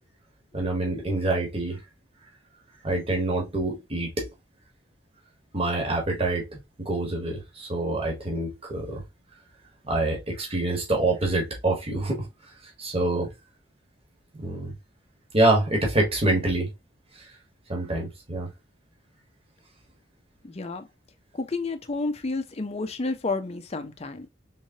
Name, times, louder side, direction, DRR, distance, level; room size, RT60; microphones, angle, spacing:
voice 1, 0.5-1.8 2.8-4.3 5.5-9.0 9.8-12.2 12.8-13.3 14.4-14.7 15.3-16.7 17.1-17.3 17.7-18.5, right 2 dB, 30° right, 1.2 m, -26 dB
voice 2, 20.4-20.9 21.4-24.3, left 3 dB, 35° left, 0.5 m, -30 dB
3.6 x 3.1 x 2.7 m
head